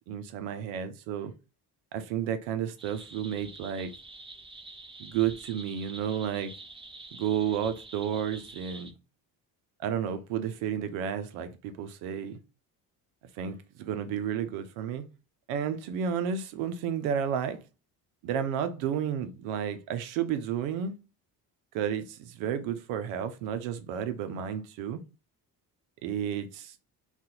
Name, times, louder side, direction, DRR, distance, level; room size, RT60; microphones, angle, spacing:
voice 1, 0.0-1.3 1.9-3.9 5.0-6.5 7.1-8.9 9.8-12.4 13.4-15.0 15.5-17.6 18.2-20.9 21.7-25.0 26.0-26.7, right 8 dB, 85° right, 0.7 m, -32 dB
sound 1, 2.8-8.9, right 2 dB, 10° right, 0.5 m, -47 dB
2.8 x 2.4 x 3.8 m
supercardioid pair, 65°, 48 cm